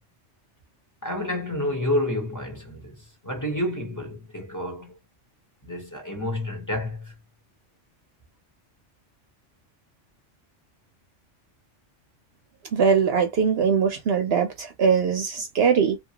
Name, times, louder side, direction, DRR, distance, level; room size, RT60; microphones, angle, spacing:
voice 1, 1.0-2.9 3.2-4.9 5.6-7.1, left 1 dB, 15° left, 0.9 m, -29 dB
voice 2, 12.7-16.0, right 6 dB, 65° right, 0.8 m, -21 dB
2.8 x 2.3 x 2.8 m
omnidirectional pair, 1.3 m